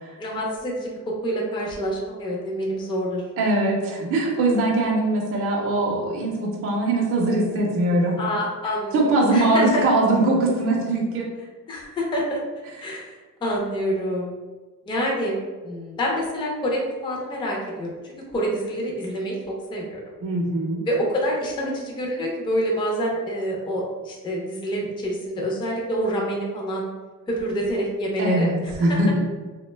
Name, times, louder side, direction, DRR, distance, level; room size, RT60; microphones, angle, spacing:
voice 1, 0.2-3.2 8.2-9.0 9.3-9.8 11.7-12.4 12.8-14.3 14.9-15.4 15.6-18.0 18.3-19.4 19.7-20.1 20.9-26.9 27.3-28.5, equal, 15° left, -3 dB, 0.3 m, -27 dB
voice 2, 3.4-8.2 8.9-11.3 20.2-20.8 28.2-29.3, right 2 dB, 45° right, -2 dB, 0.5 m, -21 dB
2.8 x 2.1 x 3.1 m, 1.3 s
cardioid pair, 180°, 33 cm